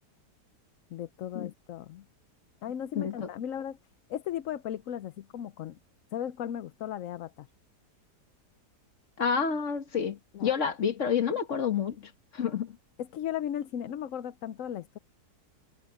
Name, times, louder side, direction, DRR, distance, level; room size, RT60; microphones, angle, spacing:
voice 1, 0.9-2.0 2.6-3.8 4.1-5.8 6.1-7.5 10.3-10.5 13.0-15.0, left 10 dB, 65° left, 1.0 m, -36 dB
voice 2, 2.9-3.3 9.2-12.8, left 7 dB, 50° left, 1.7 m, -29 dB
omnidirectional pair, 1.7 m